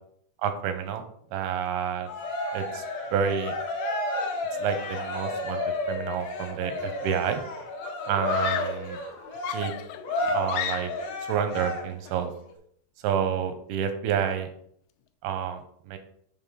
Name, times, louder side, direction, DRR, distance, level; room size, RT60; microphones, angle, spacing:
voice 1, 0.4-1.0 1.3-2.1 2.5-2.8 3.1-3.5 4.6-5.6 5.9-7.4 8.0-9.0 9.5-9.7 10.3-10.9 11.3-12.3 13.0-14.5 15.2-15.6 15.9-16.0, right 8 dB, 90° right, 8 dB, 2.7 m, -29 dB
Cheering, 2.0-12.1, left 2 dB, 70° left, 1.5 m, -32 dB
Screaming, 6.7-7.2 8.2-8.9 9.4-11.2, left 10 dB, 85° left, 2.0 m, -33 dB
6.7 x 3.6 x 5.5 m, 0.66 s
omnidirectional pair, 4.4 m